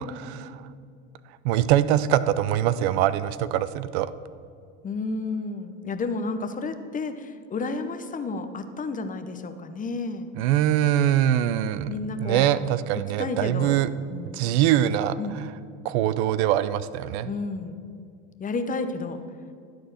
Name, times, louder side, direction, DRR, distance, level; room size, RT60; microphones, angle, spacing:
voice 1, 0.3-0.6 1.4-4.1 10.4-11.9 12.2-13.9 14.3-15.5 15.8-17.3, right 11 dB, 70° right, 15 dB, 0.6 m, -23 dB
voice 2, 4.8-10.3 11.9-12.6 13.2-13.8 14.1-14.4 15.2-15.4 17.2-17.8 18.4-19.2, left 3 dB, 25° left, 8 dB, 0.8 m, -31 dB
12.5 x 4.4 x 7.6 m, 2.3 s
hypercardioid pair, 95°, 34 cm